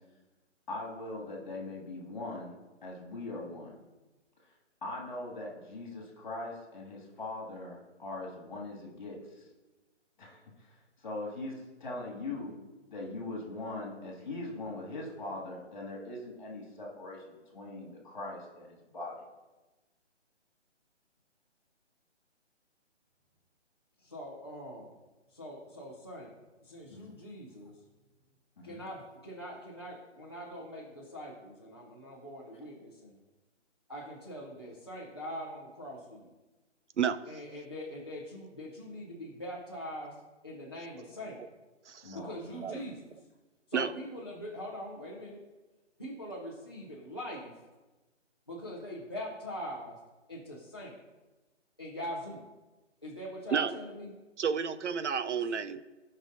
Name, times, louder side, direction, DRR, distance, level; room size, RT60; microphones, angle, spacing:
voice 1, 0.7-3.7 4.8-9.4 10.2-10.7 11.0-12.6 12.9-19.2 26.9-27.1 28.6-28.8 42.0-42.8, left 2 dB, 40° left, -2 dB, 2.2 m, -41 dB
voice 2, 24.0-24.9 25.3-26.3 26.6-27.7 28.6-33.2 33.9-36.3 37.3-40.1 40.4-41.4 42.1-43.1 43.7-45.4 46.0-47.5 48.5-50.0 50.3-51.0 51.8-52.4 53.0-54.1, equal, 20° left, -5 dB, 0.7 m, -42 dB
voice 3, 41.9-42.2 42.6-42.8 43.7-43.9 53.5-53.7 54.4-55.8, right 7 dB, 70° right, 13 dB, 0.6 m, -30 dB
14.5 x 5.5 x 2.6 m, 1.2 s
hypercardioid pair, 180°, 36 cm